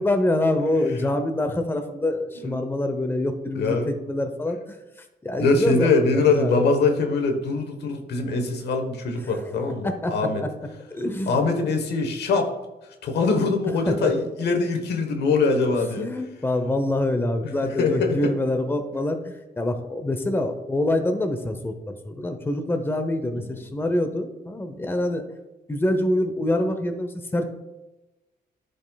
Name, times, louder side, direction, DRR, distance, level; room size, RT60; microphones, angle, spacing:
voice 1, 0.0-4.8 5.2-6.7 9.2-9.4 9.8-10.5 10.9-11.5 13.9-14.1 15.7-25.2 25.7-27.5, left 1 dB, 15° left, 7 dB, 0.7 m, -25 dB
voice 2, 3.5-3.9 5.4-10.4 11.3-12.5 13.0-16.1 17.4-18.3, left 3 dB, 85° left, 5 dB, 1.1 m, -23 dB
10.5 x 5.3 x 2.3 m, 1.0 s
cardioid pair, 95°, 17 cm